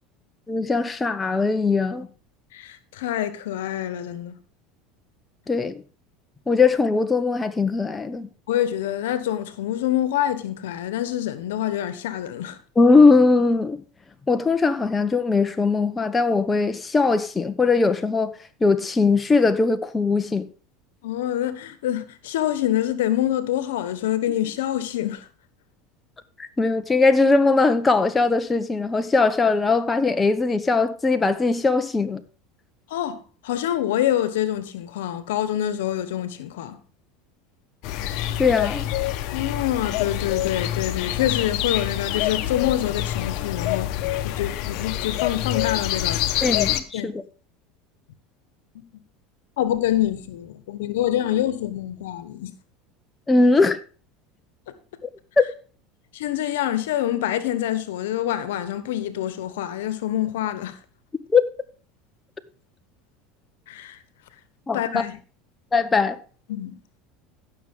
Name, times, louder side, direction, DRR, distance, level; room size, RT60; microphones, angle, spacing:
voice 1, 0.5-2.1 5.5-5.8 6.5-8.3 12.8-13.8 14.3-18.3 18.6-20.4 26.4-32.2 38.4-38.8 46.4-47.1 53.3-53.8 55.4-55.5 61.3-61.4 64.7-65.0 65.7-66.2, left 3 dB, 15° left, 0.9 m, -20 dB
voice 2, 2.5-4.4 8.5-12.6 21.0-25.2 32.9-36.8 39.3-43.9 44.2-46.2 46.9-47.1 49.6-52.5 56.1-60.8 63.7-64.0 64.7-65.2 66.5-66.8, left 12 dB, 85° left, 1.1 m, -26 dB
sound 1, 37.8-46.8, left 13 dB, 65° left, 1.0 m, -26 dB
15.5 x 6.4 x 3.6 m
supercardioid pair, 105°, 0 cm